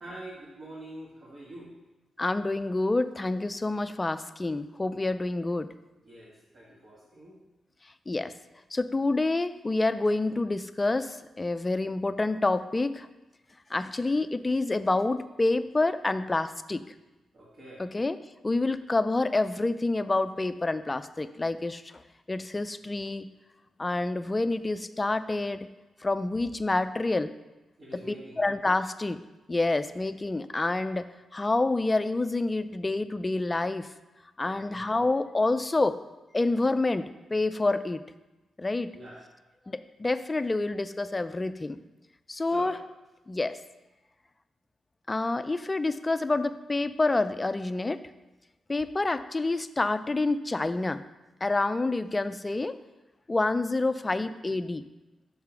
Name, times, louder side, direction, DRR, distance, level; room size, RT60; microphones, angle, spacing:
voice 1, 0.0-1.7 6.0-7.4 17.3-17.9 27.8-28.4 34.4-34.8 38.9-39.2 42.4-42.7, right 1 dB, 50° right, -6 dB, 1.6 m, -45 dB
voice 2, 2.2-5.7 8.1-8.3 8.7-13.1 13.7-16.8 17.8-18.2 18.4-21.8 22.3-23.3 23.8-25.7 26.0-27.3 28.1-29.2 29.5-33.9 34.4-36.0 36.3-38.0 38.6-38.9 39.7-41.8 42.3-42.7 43.3-43.6 45.1-48.0 48.7-51.0 51.4-52.8 53.3-54.8, left 2 dB, 25° left, 12 dB, 0.3 m, -28 dB
5.5 x 3.7 x 5.9 m, 1.1 s
cardioid pair, 65°, 0 cm